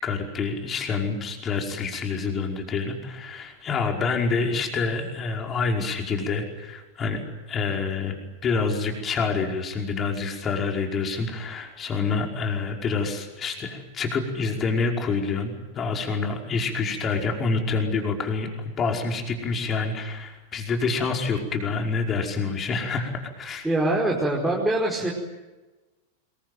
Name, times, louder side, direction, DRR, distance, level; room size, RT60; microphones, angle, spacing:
voice 1, 0.0-7.2 7.5-8.1 8.4-18.5 18.8-23.1 23.4-23.7, left 4 dB, 25° left, 2 dB, 5.2 m, -27 dB
voice 2, 23.6-25.1, right 1 dB, 5° right, -3 dB, 5.0 m, -23 dB
26.5 x 23.0 x 9.3 m, 1.2 s
figure-of-eight pair, 90°, 0 cm